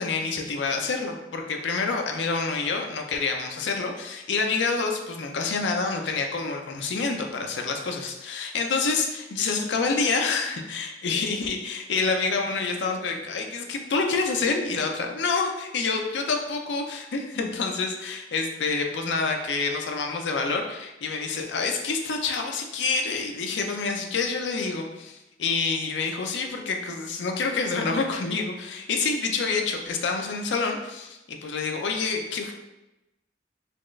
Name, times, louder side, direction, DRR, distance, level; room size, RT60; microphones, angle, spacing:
voice 1, 0.0-32.5, left 4 dB, 80° left, 2 dB, 0.5 m, -27 dB
4.2 x 2.4 x 3.1 m, 0.96 s
head